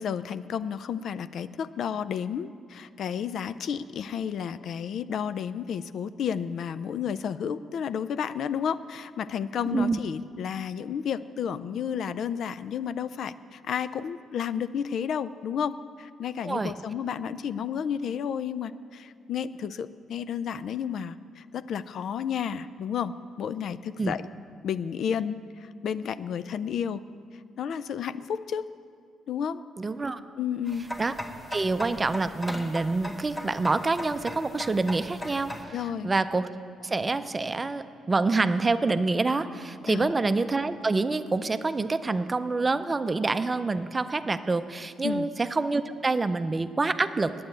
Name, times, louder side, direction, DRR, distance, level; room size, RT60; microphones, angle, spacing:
voice 1, 0.0-24.2 24.6-27.0 27.6-28.7 29.3-29.6 30.4-30.9 35.7-36.1 39.9-40.1 45.0-45.3, left 8 dB, 65° left, 14 dB, 0.4 m, -32 dB
voice 2, 9.6-10.0 16.4-16.7 24.0-24.1 29.8-30.2 31.0-31.1 31.5-35.7 36.0-36.5 36.8-47.3, right 3 dB, 25° right, 11 dB, 0.5 m, -27 dB
sound 1, 30.7-35.6, equal, 15° left, 1.2 m, -38 dB
9.6 x 8.5 x 9.1 m, 2.2 s
cardioid pair, 90°, 0 cm